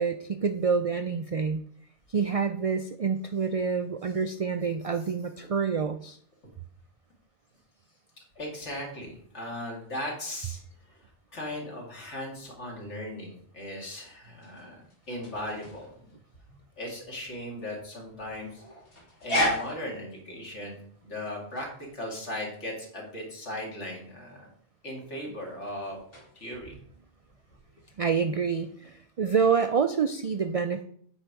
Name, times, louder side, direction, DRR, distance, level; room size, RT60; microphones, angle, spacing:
voice 1, 0.0-1.6 2.1-6.2 28.0-30.8, right 5 dB, 70° right, 8 dB, 0.3 m, -27 dB
voice 2, 8.4-10.6 10.9-14.8 15.1-16.1 16.8-18.6 19.2-21.7 21.9-24.5 24.8-26.0 26.3-26.7, left 1 dB, 85° left, -2 dB, 2.4 m, -38 dB
sound 1, 13.8-28.1, left 1 dB, 55° left, 2.0 m, -37 dB
8.7 x 4.4 x 4.6 m, 0.62 s
omnidirectional pair, 1.2 m